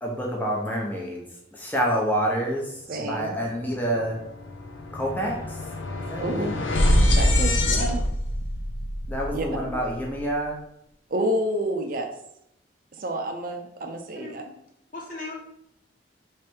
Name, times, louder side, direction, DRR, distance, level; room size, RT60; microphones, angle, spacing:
voice 1, 0.0-1.2 1.5-4.2 4.9-5.6 6.1-6.6 9.1-10.6, equal, 10° left, -2 dB, 0.8 m, -28 dB
voice 2, 2.9-3.5 6.2-6.6 7.0-8.0 9.3-9.7 11.1-12.1 12.9-14.4, right 1 dB, 45° right, 5 dB, 0.5 m, -29 dB
sound 1, 3.6-3.7 4.0-10.3, left 1 dB, 85° left, 0.7 m, -25 dB
voice 3, 7.0-7.5 14.1-14.4 14.9-15.3, left 2 dB, 45° left, -2 dB, 1.1 m, -39 dB
3.3 x 3.1 x 4.6 m, 0.78 s
head